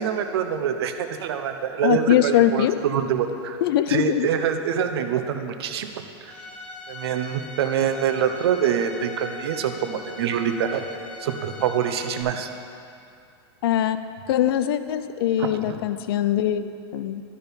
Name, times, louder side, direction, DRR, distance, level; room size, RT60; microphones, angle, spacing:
voice 1, 0.0-3.6 3.9-5.9 6.9-10.8 11.2-12.5 15.4-15.8, right 8 dB, 65° right, 7 dB, 0.7 m, -25 dB
voice 2, 1.8-2.7 3.6-4.3 13.6-14.0 14.3-17.2, left 11 dB, 60° left, 11 dB, 0.4 m, -22 dB
Bowed string instrument, 6.3-12.2, left 2 dB, 5° left, 0.8 m, -40 dB
12.0 x 4.5 x 5.2 m, 2.5 s
supercardioid pair, 160°, 14 cm